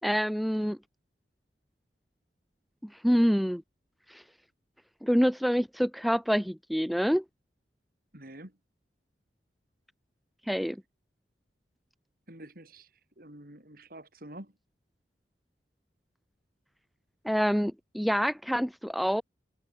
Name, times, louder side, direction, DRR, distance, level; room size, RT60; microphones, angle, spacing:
voice 1, 0.0-0.8 3.0-3.6 4.1-4.2 5.0-7.2 10.5-10.8 17.2-19.2, equal, ahead, 0.6 m, -26 dB
voice 2, 8.1-8.6 12.3-12.9 13.2-14.6, right 1 dB, 55° right, 4.3 m, -47 dB
head